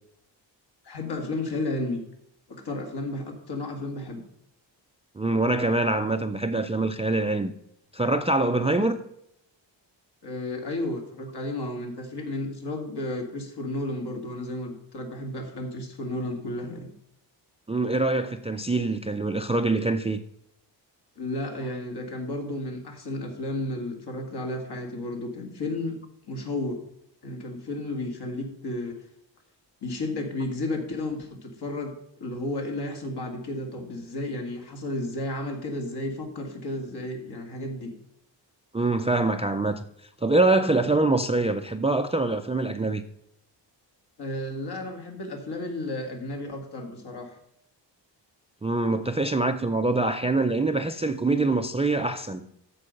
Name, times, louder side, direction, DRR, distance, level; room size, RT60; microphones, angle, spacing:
voice 1, 0.8-2.0 2.5-4.2 10.2-16.9 21.2-26.0 26.3-26.8 27.2-29.0 29.8-37.9 44.2-47.4, left 2 dB, 60° left, 2.2 m, -33 dB
voice 2, 5.2-7.5 7.9-9.0 17.7-20.2 38.7-39.8 40.2-43.0 48.6-52.5, right 2 dB, 15° right, 0.3 m, -24 dB
13.5 x 4.7 x 5.2 m
wide cardioid pair, 160°, 44 cm